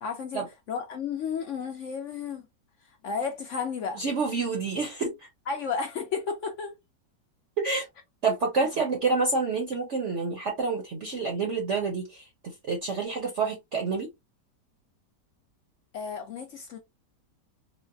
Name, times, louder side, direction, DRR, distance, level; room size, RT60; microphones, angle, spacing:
voice 1, 0.0-2.5 3.0-4.0 5.5-6.8 8.8-8.9 15.9-16.8, left 6 dB, 75° left, 0.6 m, -33 dB
voice 2, 4.0-5.1 7.6-7.9 8.2-14.1, right 4 dB, 55° right, 0.8 m, -28 dB
3.9 x 2.1 x 2.4 m
omnidirectional pair, 1.9 m